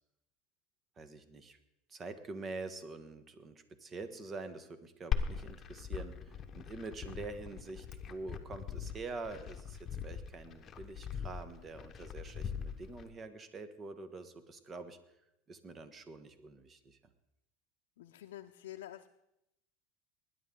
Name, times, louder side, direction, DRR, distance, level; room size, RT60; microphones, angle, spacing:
voice 1, 1.0-1.6 1.9-15.0 15.5-17.0, right 3 dB, 25° right, 10 dB, 1.3 m, -46 dB
Glass, 5.1-13.1, left 7 dB, 30° left, 1.1 m, -40 dB
voice 2, 18.0-19.1, left 13 dB, 90° left, 4 dB, 0.6 m, -48 dB
20.5 x 10.0 x 3.8 m, 0.86 s
supercardioid pair, 115°, 0 cm